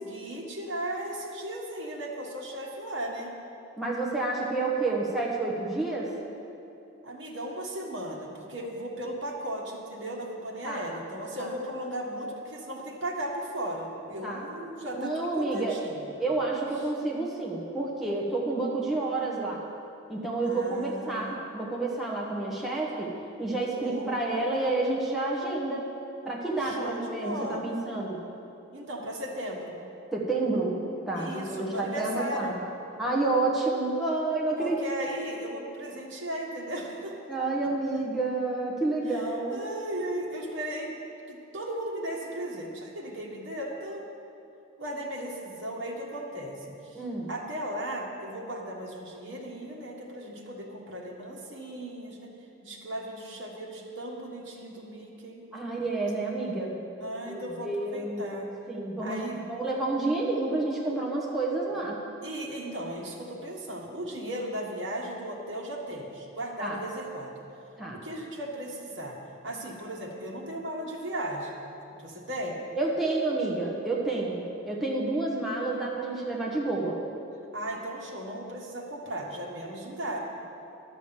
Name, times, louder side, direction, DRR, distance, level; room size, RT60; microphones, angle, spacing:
voice 1, 0.0-3.3 7.0-16.1 20.4-21.4 23.8-24.1 26.6-27.8 28.7-29.8 31.1-32.6 34.6-37.4 39.0-39.2 39.5-40.9 41.3-44.1 44.8-47.0 47.3-52.3 52.6-55.4 57.0-58.5 59.0-59.4 62.2-67.3 67.9-69.2 69.4-71.6 72.0-72.6 77.5-80.2, right 1 dB, 60° right, -2 dB, 1.6 m, -36 dB
voice 2, 3.8-6.1 10.6-10.8 11.4-11.5 14.2-14.4 14.9-15.8 16.2-19.6 20.1-23.1 23.4-25.8 26.2-28.2 30.1-30.7 31.1-32.6 33.0-34.9 37.3-39.6 46.9-47.3 55.5-56.7 57.3-58.2 58.7-62.0 66.6-66.8 67.8-68.0 72.8-77.0, right 2 dB, ahead, -5 dB, 1.2 m, -29 dB
11.0 x 6.1 x 7.4 m, 2.7 s
head